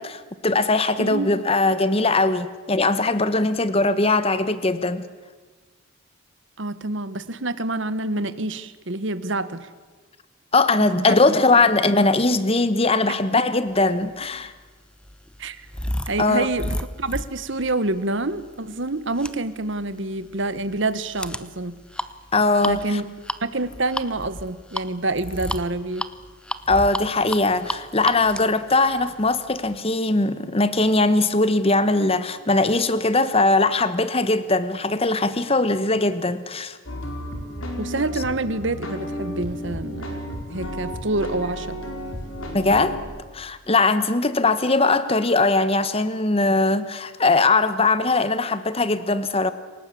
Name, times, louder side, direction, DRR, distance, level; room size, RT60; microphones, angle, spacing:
voice 1, 0.0-5.0 10.5-14.5 16.2-16.5 22.3-23.0 26.7-36.8 42.5-43.0 43.3-49.5, left 3 dB, 30° left, 13 dB, 1.1 m, -20 dB
voice 2, 1.0-1.3 6.6-9.7 11.0-11.2 15.4-15.7 16.1-21.8 22.6-23.0 23.4-26.1 37.8-40.2 40.5-41.8, right 2 dB, 60° right, 13 dB, 1.3 m, -27 dB
sound 1, 14.1-29.8, left 1 dB, 5° left, 0.7 m, -34 dB
sound 2, 36.9-43.0, equal, 75° left, 5.1 m, -33 dB
28.0 x 18.5 x 8.6 m, 1.4 s
head